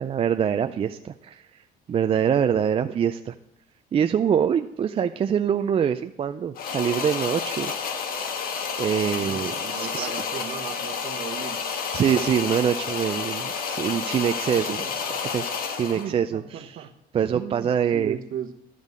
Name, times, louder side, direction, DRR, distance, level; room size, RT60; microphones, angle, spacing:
voice 1, 0.0-1.6 1.9-3.3 3.9-7.7 8.2-8.4 8.8-10.1 11.9-14.9 15.3-15.4 15.7-16.8 17.1-18.2, right 8 dB, 35° right, 8 dB, 0.4 m, -24 dB
sound 1, 6.6-16.1, left 6 dB, 60° left, 1.2 m, -30 dB
voice 2, 9.2-11.6 14.6-15.2 15.9-16.9 17.3-18.5, right 9 dB, 60° right, 7 dB, 1.1 m, -36 dB
12.5 x 5.2 x 6.4 m, 0.86 s
cardioid pair, 110°, 17 cm